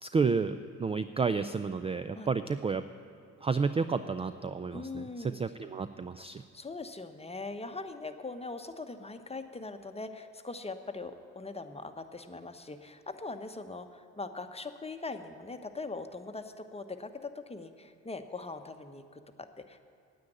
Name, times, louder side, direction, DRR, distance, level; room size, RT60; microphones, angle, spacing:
voice 1, 0.0-2.8 3.4-6.4, right 5 dB, 20° right, 12 dB, 0.3 m, -31 dB
voice 2, 4.7-5.4 6.4-19.8, left 3 dB, 15° left, 8 dB, 0.9 m, -41 dB
9.5 x 8.7 x 9.0 m, 2.4 s
hypercardioid pair, 45°, 35 cm